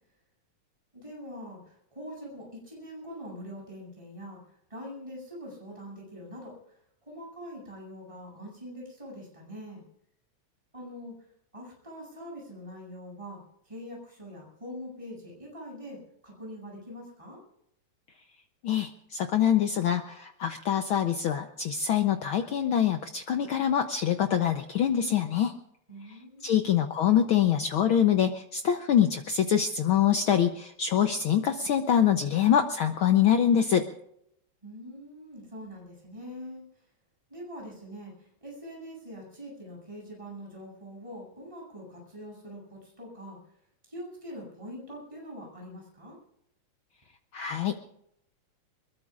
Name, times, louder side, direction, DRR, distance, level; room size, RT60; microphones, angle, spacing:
voice 1, 0.9-4.4 4.7-9.8 10.7-11.3 11.5-17.4 25.9-26.6 34.6-36.6 37.3-43.4 43.9-46.2, equal, 10° right, -2 dB, 8.0 m, -43 dB
voice 2, 18.6-25.5 26.4-33.9 47.3-47.9, left 9 dB, 75° left, 7 dB, 1.2 m, -25 dB
23.5 x 21.5 x 2.5 m, 0.75 s
omnidirectional pair, 3.3 m